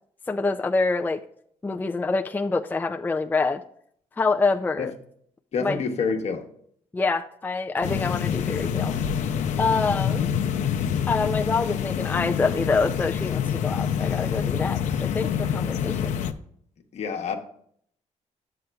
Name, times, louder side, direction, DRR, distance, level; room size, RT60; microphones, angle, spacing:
voice 1, 0.3-1.2 1.6-3.6 4.2-4.9 5.6-5.8 6.9-8.9 9.6-10.3 11.1-16.1, left 3 dB, 15° left, 0.4 m, -26 dB
voice 2, 5.5-6.5 16.9-17.4, left 5 dB, 60° left, 1.1 m, -27 dB
sound 1, 7.8-16.3, left 8 dB, 75° left, 0.6 m, -26 dB
10.5 x 7.8 x 2.3 m
cardioid pair, 90°, 13 cm